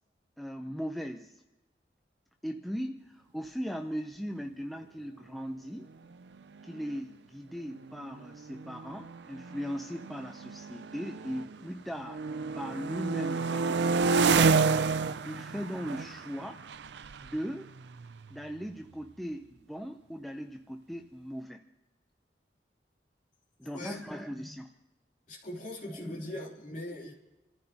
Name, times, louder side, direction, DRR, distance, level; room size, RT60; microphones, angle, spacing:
voice 1, 0.4-1.4 2.4-5.9 6.6-12.2 12.6-14.6 15.0-16.6 17.2-17.7 18.3-21.6 23.6-24.8 25.9-26.3 26.7-27.1, equal, ahead, 2 dB, 0.6 m, -39 dB
sound 1, 6.3-6.4 6.6-7.0 7.7-11.6 12.0-18.6, right 4 dB, 70° right, 0.5 m, -30 dB
voice 2, 25.3-27.1, left 1 dB, 45° left, -2 dB, 3.1 m, -40 dB
28.5 x 14.5 x 2.9 m, 1.0 s
head